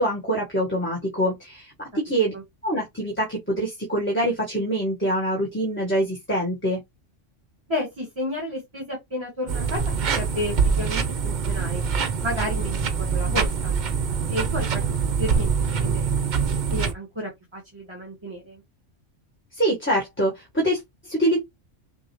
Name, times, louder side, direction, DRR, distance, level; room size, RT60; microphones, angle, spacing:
voice 1, 0.0-2.3 2.6-6.8 19.5-21.4, right 1 dB, 10° left, 1.4 m, -25 dB
voice 2, 7.7-9.8 10.1-11.8 12.2-13.8 14.3-14.8 15.2-16.1 16.7-18.6, left 1 dB, 25° right, 1.6 m, -32 dB
sound 1, 9.5-16.9, right 5 dB, 45° right, 0.7 m, -24 dB
6.1 x 2.7 x 3.1 m
omnidirectional pair, 1.3 m